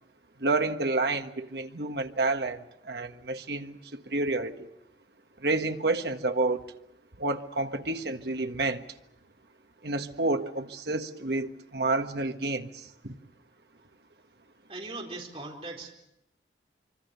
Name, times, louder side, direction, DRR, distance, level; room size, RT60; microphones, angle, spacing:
voice 1, 0.4-4.7 5.4-6.7 7.2-8.8 9.8-13.1, right 2 dB, 65° right, 1.5 m, -29 dB
voice 2, 14.7-15.9, right 2 dB, 35° right, 4.2 m, -39 dB
25.5 x 24.5 x 6.9 m
head